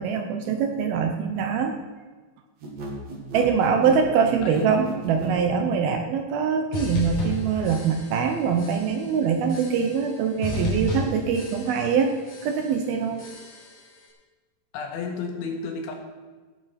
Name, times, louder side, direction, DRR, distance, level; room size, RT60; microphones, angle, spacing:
voice 1, 0.0-1.7 3.3-12.1 12.4-13.2, right 6 dB, 75° right, 5 dB, 2.4 m, -23 dB
sound 1, 2.6-5.4, right 1 dB, 50° right, 2.7 m, -34 dB
voice 2, 3.6-4.0 4.4-4.7 14.7-16.0, left 5 dB, 90° left, 2 dB, 4.1 m, -32 dB
sound 2, 6.7-8.3 8.6-9.1 9.5-10.1 10.4-12.0 12.3-12.8 13.2-13.8, left 2 dB, 50° left, 4.8 m, -33 dB
16.5 x 7.3 x 5.9 m, 1.3 s
omnidirectional pair, 5.1 m